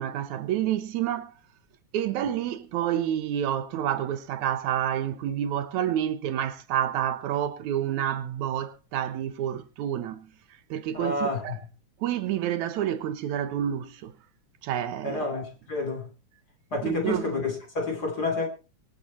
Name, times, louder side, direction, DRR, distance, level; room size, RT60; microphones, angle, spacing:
voice 1, 0.0-1.3 1.9-10.3 10.7-11.6 12.0-14.1 14.6-15.2 16.8-17.4, right 10 dB, 75° right, 2.2 m, -29 dB
voice 2, 10.9-11.6 15.0-16.1 16.7-18.5, left 3 dB, 30° left, 3.4 m, -29 dB
25.0 x 8.5 x 4.1 m
omnidirectional pair, 3.4 m